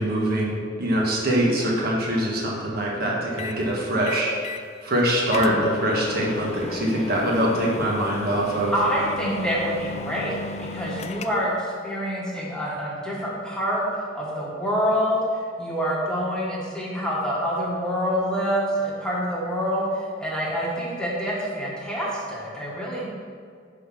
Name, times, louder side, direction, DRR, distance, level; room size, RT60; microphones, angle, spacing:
voice 1, 0.0-8.7, right 1 dB, 55° right, -3 dB, 1.6 m, -24 dB
sound 1, 3.4-3.6 4.1-4.7 5.0-5.1 5.3-11.6, left 3 dB, 35° left, 0.3 m, -35 dB
voice 2, 8.7-23.1, equal, 5° left, -5 dB, 1.5 m, -26 dB
9.8 x 3.9 x 6.2 m, 2.1 s
head